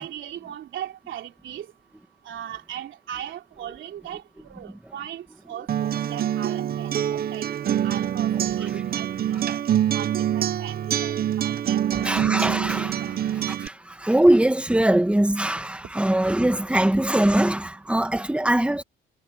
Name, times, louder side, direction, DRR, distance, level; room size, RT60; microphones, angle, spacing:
voice 1, 0.0-1.7 2.2-7.5 7.8-9.6 9.9-12.4 13.0-13.1, right 11 dB, 75° right, 3.0 m, -38 dB
Acoustic guitar, 5.7-13.7, right 10 dB, 50° right, 0.7 m, -25 dB
voice 2, 12.0-18.8, right 1 dB, 5° right, 1.9 m, -22 dB
cardioid pair, 90°, 20 cm